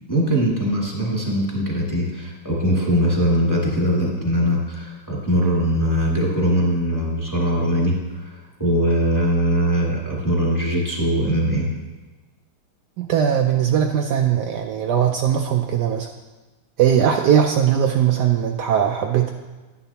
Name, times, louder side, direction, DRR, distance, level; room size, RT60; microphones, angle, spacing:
voice 1, 0.1-7.9 8.2-11.7, equal, 10° left, -5 dB, 1.8 m, -21 dB
voice 2, 13.0-16.1 16.8-19.3, right 9 dB, 85° right, 3 dB, 0.9 m, -19 dB
11.0 x 10.0 x 2.9 m, 1.2 s
omnidirectional pair, 2.4 m